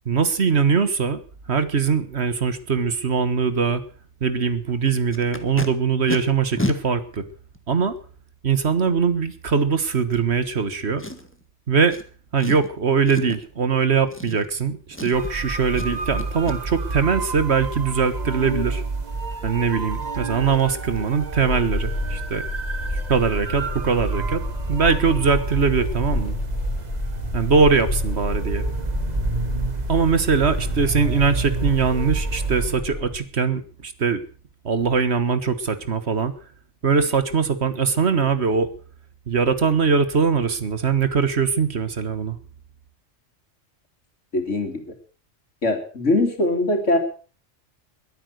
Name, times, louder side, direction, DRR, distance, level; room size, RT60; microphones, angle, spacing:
voice 1, 0.0-1.2 1.5-3.8 4.2-7.2 7.7-7.9 8.4-11.0 11.7-12.0 12.3-14.8 15.0-18.8 19.4-22.4 23.1-24.4 24.7-26.4 27.3-28.7 29.9-34.2 34.6-36.3 36.8-38.7 39.3-42.4, right 5 dB, 65° right, 12 dB, 1.7 m, -21 dB
Packing tape duct tape, 5.1-5.7 6.1-6.2 6.6-6.8 7.5-7.6 11.0-11.4 11.9-12.0 12.4-12.7 13.1-13.4 14.1-14.6 14.9-15.4 15.7-15.9 16.2-16.6 19.6-19.7 20.0-20.2 20.5-20.7 21.0-21.2 21.5-21.6, left 1 dB, 10° left, 1.6 m, -31 dB
sound 1, 15.1-32.7, right 3 dB, 35° right, 1.3 m, -30 dB
sound 2, 21.3-33.2, left 2 dB, 40° left, 3.2 m, -30 dB
voice 2, 44.3-44.8 45.6-47.0, left 2 dB, 90° left, 5 dB, 3.2 m, -21 dB
22.0 x 8.9 x 6.5 m, 0.40 s
omnidirectional pair, 1.2 m